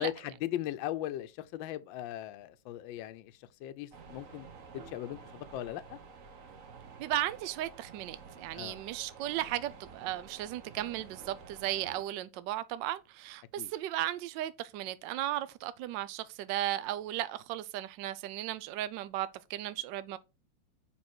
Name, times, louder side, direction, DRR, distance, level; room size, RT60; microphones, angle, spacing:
voice 1, 0.0-3.3 3.6-4.5 4.7-6.0 8.5-8.8 13.6-13.7, left 13 dB, 75° left, 1.3 m, -38 dB
sound 1, 3.9-12.0, right 5 dB, 55° right, 1.0 m, -51 dB
voice 2, 7.0-20.2, right 13 dB, 75° right, 1.1 m, -35 dB
7.4 x 5.4 x 4.3 m
omnidirectional pair, 2.2 m